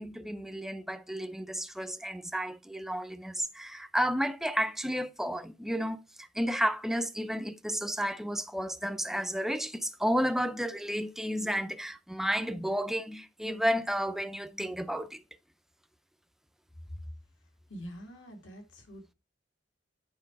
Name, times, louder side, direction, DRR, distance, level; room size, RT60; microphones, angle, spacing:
voice 1, 0.0-6.0 6.3-15.2, equal, ahead, 0.5 m, -32 dB
voice 2, 17.7-19.1, equal, 70° left, 2.3 m, -45 dB
8.9 x 4.9 x 4.7 m
head